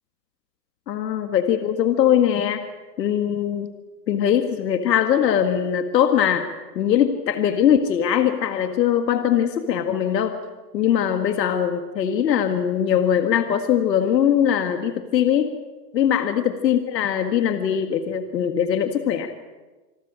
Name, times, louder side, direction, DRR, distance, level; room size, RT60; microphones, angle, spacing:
voice 1, 0.9-2.7 3.0-3.7 4.1-6.4 6.8-10.4 10.7-15.5 15.9-19.3, left 9 dB, 80° left, 7 dB, 1.9 m, -21 dB
26.0 x 13.0 x 8.7 m, 1.2 s
hypercardioid pair, 125°, 49 cm